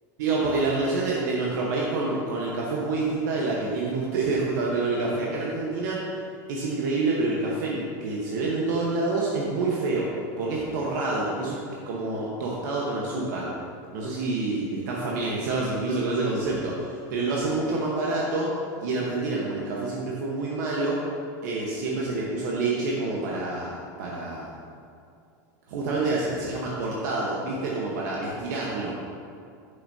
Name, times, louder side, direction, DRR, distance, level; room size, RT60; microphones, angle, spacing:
voice 1, 0.2-6.1 6.5-10.1 10.4-11.6 11.9-13.5 13.9-18.5 18.8-21.0 21.4-24.5 25.7-29.0, right 3 dB, 80° right, -4 dB, 1.2 m, -27 dB
9.2 x 6.9 x 2.8 m, 2.4 s
supercardioid pair, 145°, 10 cm